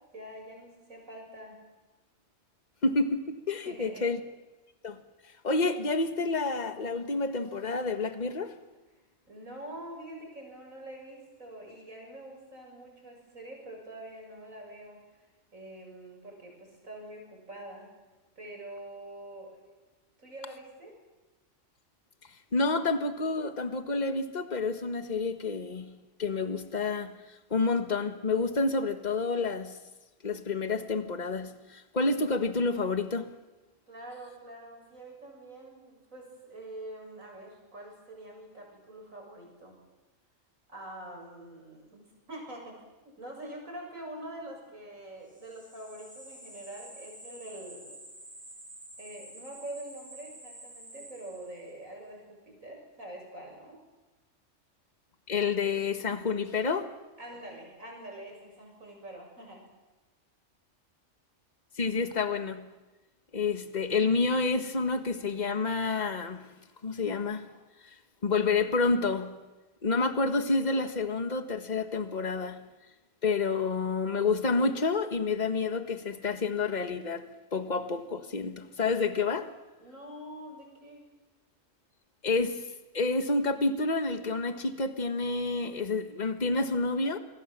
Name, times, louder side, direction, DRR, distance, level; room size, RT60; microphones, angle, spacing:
voice 1, 0.1-1.6 3.6-4.1 9.3-15.0 15.5-17.9 18.4-19.6 20.2-21.0 33.9-39.8 40.7-48.0 49.0-53.8 57.2-59.6 79.8-81.1, right 1 dB, 80° right, 7.5 m, -45 dB
voice 2, 2.8-4.2 4.8-5.0 5.4-8.6 22.5-27.2 27.5-29.8 30.2-33.3 55.3-56.9 61.8-62.7 63.3-66.5 66.8-67.5 68.2-69.4 69.8-72.6 73.2-79.5 82.2-82.6 82.9-87.2, left 3 dB, 35° left, 1.6 m, -29 dB
sound 1, 45.3-51.8, right 1 dB, 10° right, 7.6 m, -49 dB
27.5 x 21.5 x 7.5 m
omnidirectional pair, 1.4 m